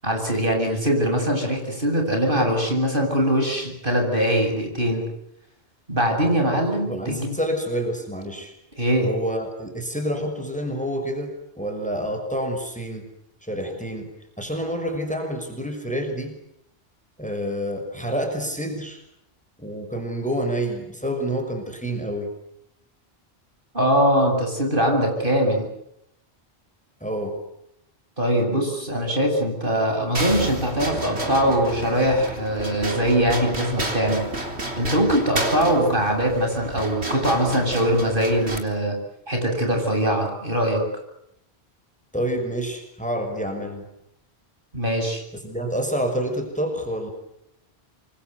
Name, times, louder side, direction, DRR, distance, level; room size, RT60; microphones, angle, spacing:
voice 1, 0.0-5.1 5.9-7.4 8.8-9.1 23.7-25.7 28.2-34.2 34.8-38.9 39.3-40.8 44.7-45.2, equal, 55° right, 3 dB, 8.3 m, -22 dB
voice 2, 6.5-8.5 9.0-13.1 13.4-16.4 17.2-19.0 19.6-22.3 27.0-27.4 42.1-43.9 45.3-47.1, equal, 5° left, 4 dB, 5.8 m, -28 dB
sound 1, 30.1-38.6, right 2 dB, 85° right, 4.1 m, -31 dB
27.5 x 24.0 x 8.2 m, 0.79 s
omnidirectional pair, 1.1 m